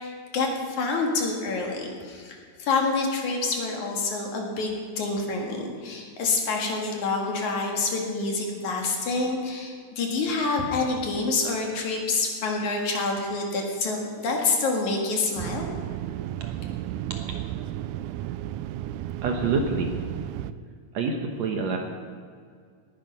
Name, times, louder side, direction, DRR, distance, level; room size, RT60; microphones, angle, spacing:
voice 1, 0.0-15.7, left 3 dB, 65° left, 1 dB, 3.3 m, -27 dB
sound 1, 15.4-20.5, right 12 dB, 80° right, 1.9 m, -33 dB
voice 2, 19.2-20.0 20.9-21.8, right 4 dB, 65° right, 3 dB, 2.1 m, -26 dB
19.0 x 10.5 x 5.4 m, 2.1 s
omnidirectional pair, 3.8 m